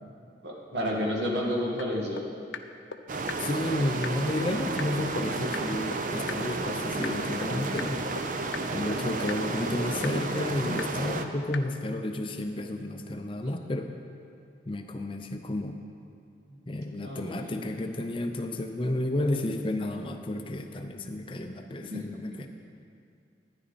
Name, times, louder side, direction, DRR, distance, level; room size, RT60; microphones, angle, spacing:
voice 1, 0.4-2.3 16.5-16.6 17.0-17.8 21.8-22.0, equal, 70° right, -3 dB, 2.0 m, -31 dB
sound 1, 1.8-1.9 2.2-2.3 2.5-2.6 2.9-3.0 3.3-3.4 3.7-3.8 4.0-4.1 4.4-4.5 4.8-4.9 5.2-5.3 5.5-5.6 5.9-6.0 6.3-6.4 6.7-6.8 7.0-7.1 7.4-7.5 7.8-7.9 8.2-8.3 8.5-8.6 8.9-9.0 9.3-9.4 9.7-9.8 10.0-10.1 10.4-10.5 10.8-10.9 11.2-11.3 11.5-11.6, left 6 dB, 75° left, 0.5 m, -35 dB
sound 2, 3.1-11.3, right 3 dB, 45° right, 0.5 m, -32 dB
voice 2, 3.4-8.0 8.7-13.9 14.7-15.8 16.7-22.5, left 1 dB, 30° left, 5 dB, 0.5 m, -31 dB
12.5 x 10.0 x 4.1 m, 2.5 s
head